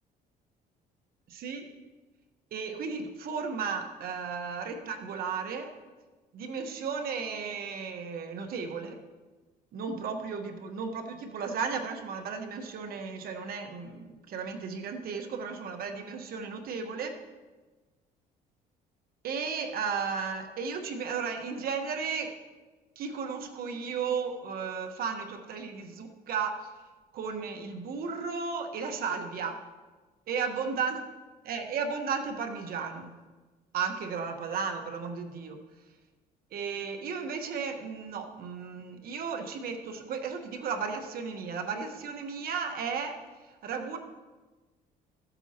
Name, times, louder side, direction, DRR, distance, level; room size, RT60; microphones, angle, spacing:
voice 1, 1.3-1.7 2.5-5.7 6.3-9.0 9.7-17.2 19.2-22.3 23.0-26.6 27.1-29.6 30.3-31.0 31.4-33.1 33.7-35.6 36.5-43.2 43.5-44.0, right 5 dB, 60° right, 5 dB, 1.2 m, -34 dB
14.5 x 8.1 x 2.9 m, 1.3 s
cardioid pair, 110°, 17 cm